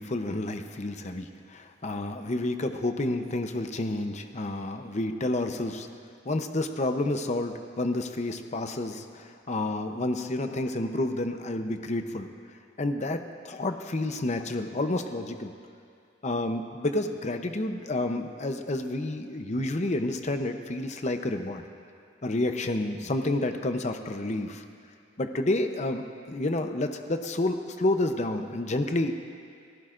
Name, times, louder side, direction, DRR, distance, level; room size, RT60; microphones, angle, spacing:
voice 1, 0.0-5.9 6.2-12.3 12.8-15.5 16.2-21.7 22.2-24.6 25.2-29.1, left 2 dB, 35° left, 6 dB, 0.7 m, -30 dB
28.5 x 15.0 x 2.6 m, 2.3 s
head